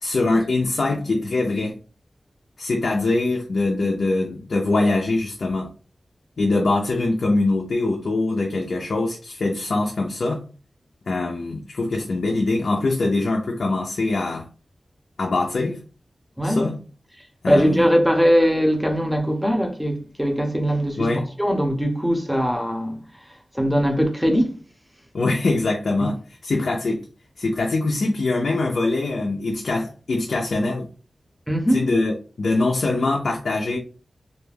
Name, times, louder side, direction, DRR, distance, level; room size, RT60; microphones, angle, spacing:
voice 1, 0.0-1.8 2.6-5.7 6.4-10.4 11.1-14.5 15.2-15.8 16.4-16.8 17.4-17.8 21.0-21.2 25.1-26.2 26.4-27.0 27.4-30.9 31.7-33.8, left 2 dB, 80° left, 0.4 m, -23 dB
voice 2, 16.4-16.7 17.2-21.1 21.4-23.0 23.5-24.5 31.5-31.9, equal, ahead, 0.6 m, -20 dB
2.4 x 2.2 x 3.3 m
wide cardioid pair, 100°, 0 cm